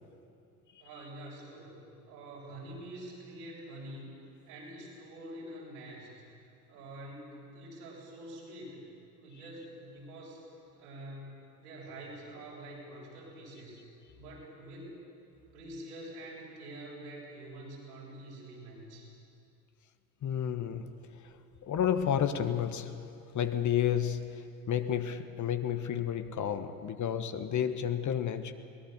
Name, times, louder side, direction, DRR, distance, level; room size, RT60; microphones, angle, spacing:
voice 1, 0.8-8.9 9.1-10.4 10.7-13.8 14.1-15.0 15.5-19.1, right 1 dB, 75° right, -4 dB, 7.5 m, -46 dB
voice 2, 20.2-21.0 21.6-23.0 23.3-28.5, left 9 dB, 40° left, 9 dB, 1.3 m, -31 dB
22.5 x 19.5 x 6.8 m, 2.6 s
figure-of-eight pair, 60°, 46 cm